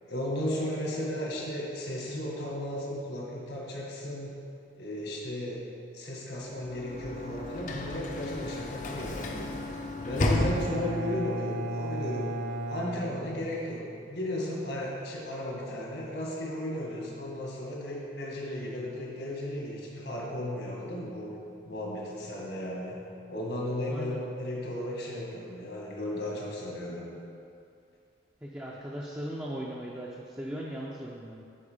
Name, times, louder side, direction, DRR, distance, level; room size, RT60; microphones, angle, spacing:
voice 1, 0.0-4.4 4.8-5.6 5.9-9.5 10.0-12.3 12.7-21.3 21.6-23.0 23.3-27.1, left 1 dB, 65° left, -3 dB, 1.6 m, -35 dB
Sliding door / Slam, 6.5-11.2, left 1 dB, 40° left, 0.5 m, -33 dB
Bowed string instrument, 10.2-14.0, right 1 dB, 65° right, 0.9 m, -35 dB
voice 2, 23.9-24.2 28.4-31.4, equal, 10° right, -4 dB, 0.5 m, -38 dB
8.7 x 4.7 x 5.0 m, 2.5 s
head